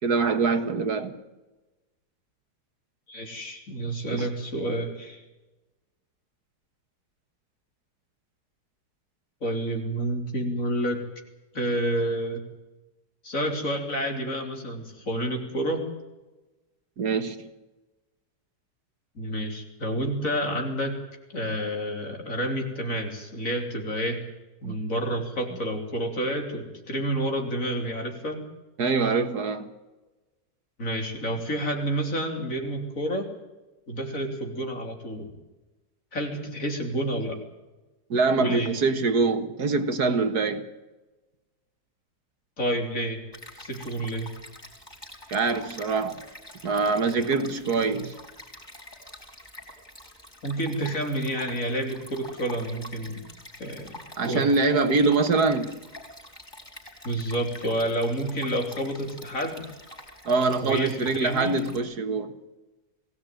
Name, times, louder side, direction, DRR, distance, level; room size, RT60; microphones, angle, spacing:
voice 1, 0.0-1.2 4.1-4.3 17.0-17.5 24.6-24.8 28.8-29.7 38.1-40.7 45.3-46.2 46.6-48.1 54.2-55.8 60.3-62.3, right 4 dB, 60° right, 1.9 m, -24 dB
voice 2, 3.1-5.2 9.4-11.0 11.5-12.4 13.2-15.9 19.2-21.0 21.3-24.2 24.6-28.4 30.8-33.3 33.9-35.3 36.1-37.4 38.4-38.7 42.6-43.2 43.6-44.3 50.4-53.2 53.6-54.5 57.0-59.7 60.6-61.6, right 1 dB, 45° left, 3.7 m, -29 dB
Stream, 43.3-61.8, left 1 dB, 15° left, 5.0 m, -46 dB
21.5 x 17.5 x 9.1 m
omnidirectional pair, 1.9 m